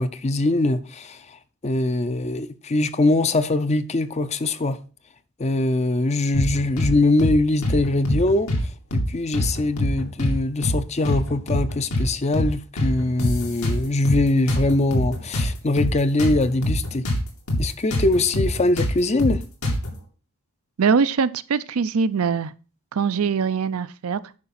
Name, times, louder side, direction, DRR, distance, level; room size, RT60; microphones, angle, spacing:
voice 1, 0.0-4.8 5.4-17.1 17.6-19.4, left 2 dB, 30° left, 0.5 m, -22 dB
sound 1, 6.3-6.9 7.2-7.4 7.6-8.6 8.9-9.1 9.3-10.4 10.6-10.8 11.0-12.1 12.3-12.5 12.8-14.2 14.5-17.2 17.5-17.6 17.9-19.9, left 1 dB, 85° left, 2.6 m, -24 dB
voice 2, 20.8-22.5 22.9-24.2, right 5 dB, 80° right, 0.5 m, -22 dB
9.7 x 5.7 x 4.2 m
head